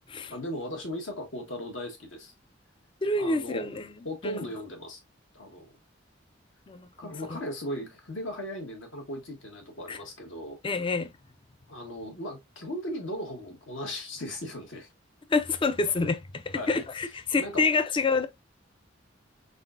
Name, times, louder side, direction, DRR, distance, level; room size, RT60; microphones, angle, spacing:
voice 1, 0.3-2.3 3.1-3.7 4.1-5.0 5.3-5.8 7.0-10.6 11.7-14.9 16.5-16.8 17.4-17.7, equal, 70° left, 1.6 m, -37 dB
voice 2, 3.0-3.9 4.2-4.4 6.7-7.1 9.9-10.0 10.6-11.1 15.3-18.3, left 3 dB, 25° left, 0.4 m, -27 dB
4.1 x 3.9 x 2.5 m
head